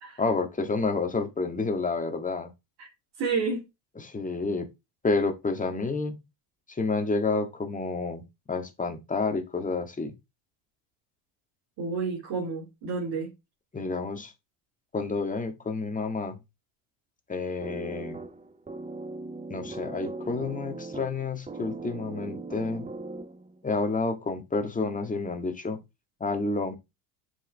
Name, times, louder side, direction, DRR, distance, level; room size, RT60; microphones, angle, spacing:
voice 1, 0.2-2.5 4.0-4.7 5.0-6.2 6.7-10.1 13.7-14.3 14.9-16.4 17.3-18.2 19.5-22.9 23.6-25.8 26.2-26.8, left 3 dB, 15° left, 1.8 m, -29 dB
voice 2, 3.2-3.6 11.8-13.3, right 4 dB, 50° right, 2.7 m, -30 dB
sound 1, 17.6-23.6, right 3 dB, 15° right, 1.0 m, -39 dB
7.4 x 5.1 x 3.4 m
hypercardioid pair, 70°, 48 cm